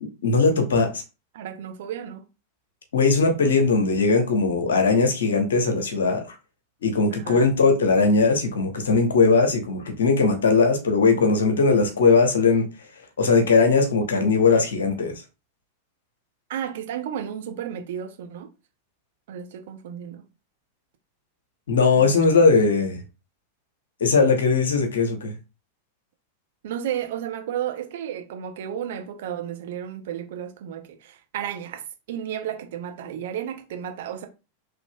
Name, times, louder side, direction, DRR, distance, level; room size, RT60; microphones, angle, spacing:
voice 1, 0.2-1.0 2.9-6.2 6.8-12.7 13.2-15.1 21.7-23.0 24.0-25.3, left 4 dB, 65° left, 0.9 m, -19 dB
voice 2, 1.3-2.2 7.1-7.5 16.5-18.5 19.3-20.2 21.9-22.4 26.6-34.3, right 9 dB, 55° right, 0.6 m, -33 dB
3.9 x 3.1 x 2.3 m
figure-of-eight pair, 90°, 0 cm